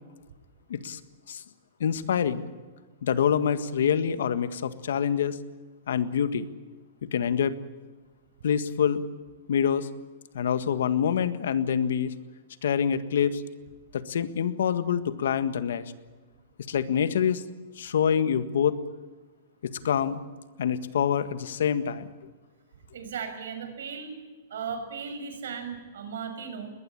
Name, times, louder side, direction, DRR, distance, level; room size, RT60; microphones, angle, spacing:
voice 1, 1.8-2.5 3.0-5.4 5.9-6.5 7.1-7.5 8.4-9.0 9.5-9.9 10.3-12.1 12.6-13.4 13.9-15.8 16.7-17.4 17.8-18.8 19.8-20.2 20.6-22.1, left 8 dB, 75° left, 12 dB, 1.7 m, -26 dB
voice 2, 22.9-24.1 24.5-26.7, right 6 dB, 75° right, 8 dB, 6.0 m, -36 dB
21.5 x 20.0 x 8.7 m, 1.3 s
supercardioid pair, 175°, 0 cm